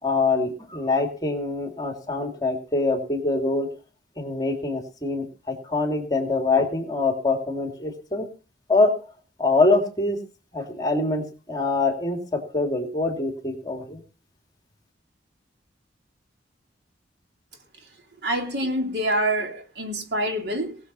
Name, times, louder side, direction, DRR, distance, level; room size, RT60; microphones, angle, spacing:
voice 1, 0.0-3.7 4.2-8.3 8.7-8.9 9.4-10.2 10.5-14.0, left 3 dB, 20° left, 2.7 m, -24 dB
voice 2, 18.2-20.8, right 1 dB, 65° right, 3.2 m, -26 dB
19.5 x 7.2 x 5.5 m
head